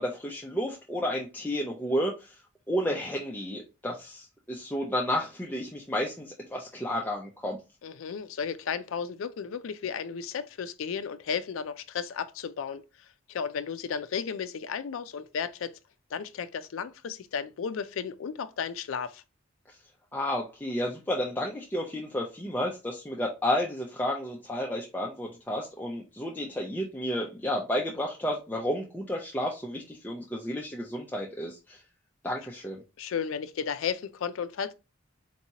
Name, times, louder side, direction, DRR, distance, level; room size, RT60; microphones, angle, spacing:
voice 1, 0.0-2.4 2.7-7.6 20.1-31.8 32.2-32.8, equal, 10° left, 0.5 m, -31 dB
voice 2, 7.8-12.8 13.3-15.7 16.1-19.2 33.0-34.7, left 6 dB, 85° left, 0.4 m, -34 dB
4.5 x 2.8 x 2.8 m
head